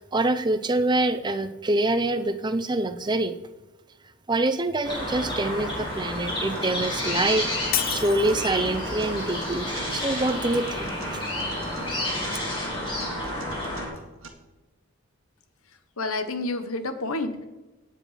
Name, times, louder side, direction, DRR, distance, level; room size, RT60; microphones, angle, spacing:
voice 1, 0.0-3.3 4.3-10.9, right 2 dB, 20° right, 10 dB, 0.6 m, -25 dB
sound 1, 4.8-13.9, left 1 dB, 20° left, 4.6 m, -30 dB
Acoustic guitar, 6.3-14.3, right 3 dB, 65° right, 1.8 m, -42 dB
Shatter, 7.7-8.7, left 12 dB, 40° left, 0.7 m, -30 dB
voice 2, 16.0-17.4, left 2 dB, 70° left, 9 dB, 1.2 m, -29 dB
17.5 x 7.6 x 5.0 m, 1.1 s
head